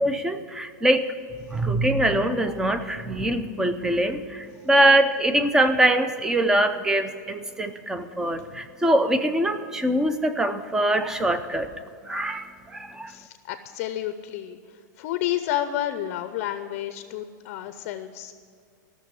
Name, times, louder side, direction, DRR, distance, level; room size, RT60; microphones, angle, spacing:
voice 1, 0.0-1.1 1.5-11.7 12.1-13.1, right 1 dB, 5° right, 11 dB, 0.5 m, -23 dB
voice 2, 13.1-14.6 15.0-18.3, left 12 dB, 35° left, 10 dB, 0.6 m, -30 dB
14.5 x 6.7 x 9.3 m, 2.2 s
supercardioid pair, 165°, 10 cm